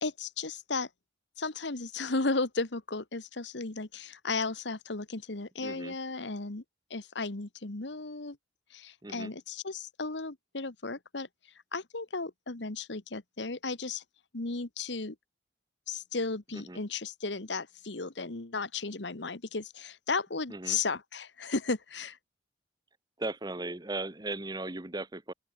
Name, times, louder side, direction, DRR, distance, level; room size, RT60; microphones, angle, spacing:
voice 1, 0.0-0.9 1.4-6.6 6.9-8.4 8.7-11.3 11.7-14.0 14.3-15.1 15.9-22.2, left 3 dB, 70° left, 1.6 m, -34 dB
voice 2, 5.6-5.9 9.0-9.3 16.5-16.8 20.5-20.8 23.2-25.3, right 2 dB, 20° right, 1.2 m, -37 dB
open air
head